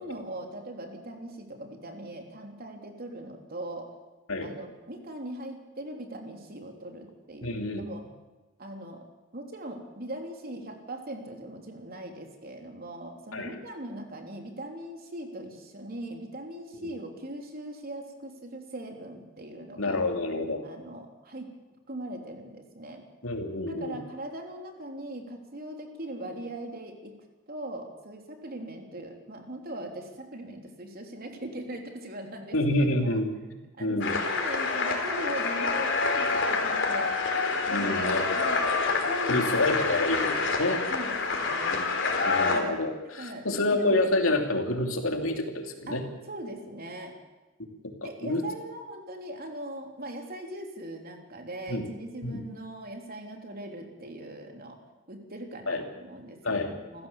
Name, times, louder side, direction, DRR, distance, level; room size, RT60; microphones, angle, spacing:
voice 1, 0.0-3.9 4.4-8.0 8.6-9.0 9.3-20.0 20.6-21.5 21.9-23.0 23.7-27.1 27.5-33.2 33.8-37.2 37.7-38.7 39.0-40.0 40.6-41.8 42.5-42.7 43.0-44.3 45.9-47.1 48.0-54.8 55.1-57.1, right 1 dB, 50° right, 3 dB, 3.5 m, -40 dB
voice 2, 7.4-7.8 13.3-13.6 16.8-16.9 19.8-20.6 23.2-24.0 32.5-33.3 33.8-34.2 37.7-38.5 39.3-40.8 41.7-41.9 42.2-46.0 47.8-48.4 51.7-51.8 52.2-52.4 55.7-55.8 56.4-56.8, left 2 dB, 80° left, 3 dB, 3.0 m, -28 dB
sound 1, 34.0-42.6, left 4 dB, 65° left, 4.0 m, -27 dB
28.0 x 15.0 x 7.3 m, 1.2 s
head